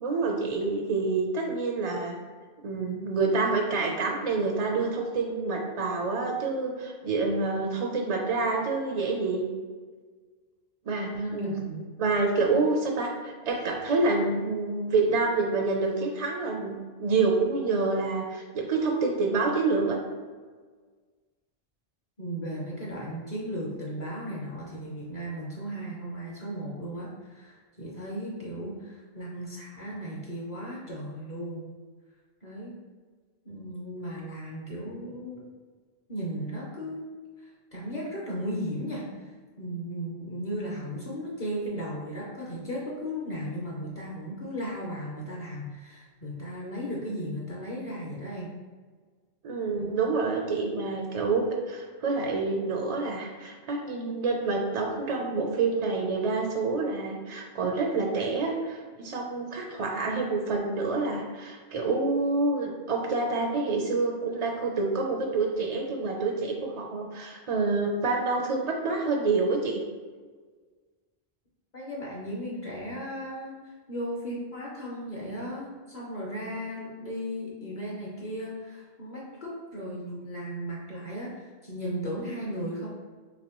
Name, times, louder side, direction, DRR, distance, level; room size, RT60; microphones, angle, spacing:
voice 1, 0.0-2.2 2.6-9.5 10.8-11.6 12.0-20.0 49.4-69.8, right 3 dB, 50° right, 0 dB, 0.4 m, -27 dB
voice 2, 11.1-11.9 22.2-31.7 32.4-32.7 33.4-35.4 36.1-37.1 37.4-39.3 39.6-48.5 49.8-50.0 71.7-82.9, equal, 45° left, -4 dB, 0.8 m, -36 dB
4.1 x 3.0 x 2.9 m, 1.5 s
omnidirectional pair, 1.0 m